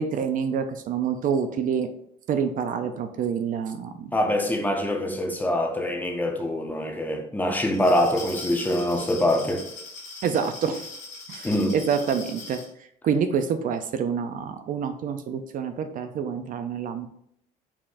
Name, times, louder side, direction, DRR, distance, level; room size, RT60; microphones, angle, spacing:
voice 1, 0.0-1.9 2.3-4.1 10.2-10.9 11.3-12.6 13.0-17.1, right 7 dB, 55° right, 0.4 m, -27 dB
voice 2, 4.1-9.6 11.4-11.8, left 1 dB, 10° left, 0.7 m, -24 dB
Glass, 7.7-12.7, left 3 dB, 45° left, 1.5 m, -40 dB
4.7 x 3.6 x 2.5 m
cardioid pair, 110°, 17 cm